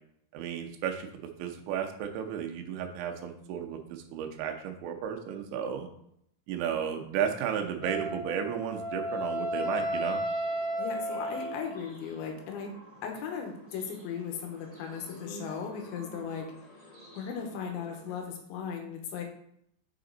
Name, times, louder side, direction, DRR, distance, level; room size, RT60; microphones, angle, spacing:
voice 1, 0.3-1.1 1.4-5.9 6.5-10.2, right 8 dB, 85° right, 4 dB, 3.1 m, -33 dB
Wind instrument woodwind instrument, 7.8-11.8, equal, 50° left, 2.4 m, -33 dB
sound 1, 9.5-18.2, equal, 10° left, 0.6 m, -49 dB
voice 2, 10.8-12.7 13.0-16.5 17.2-19.2, left 7 dB, 85° left, 3 dB, 3.2 m, -37 dB
6.9 x 5.1 x 3.8 m, 0.72 s
omnidirectional pair, 5.2 m